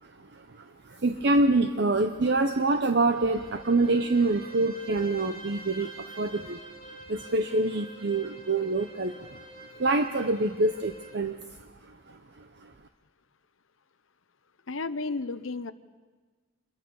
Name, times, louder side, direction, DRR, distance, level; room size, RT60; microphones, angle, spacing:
voice 1, 0.0-12.7, right 2 dB, 55° right, 7 dB, 0.8 m, -27 dB
Bowed string instrument, 2.9-11.3, right 1 dB, 30° right, 2.9 m, -47 dB
voice 2, 14.7-15.7, left 3 dB, 75° left, 13 dB, 0.9 m, -32 dB
27.0 x 22.5 x 5.5 m, 1.3 s
head